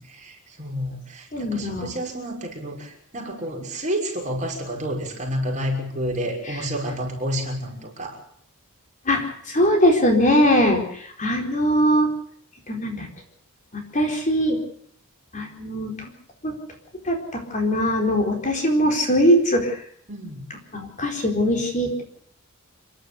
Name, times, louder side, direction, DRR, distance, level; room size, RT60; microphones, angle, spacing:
voice 1, 0.0-8.2 20.1-20.4, equal, 35° right, 0 dB, 6.0 m, -30 dB
voice 2, 1.3-1.9 9.1-12.1 12.7-13.1 13.7-14.6 15.3-16.1 16.4-16.5 17.0-19.8 20.7-22.0, equal, 35° left, 3 dB, 4.4 m, -21 dB
29.0 x 11.5 x 8.3 m, 0.63 s
head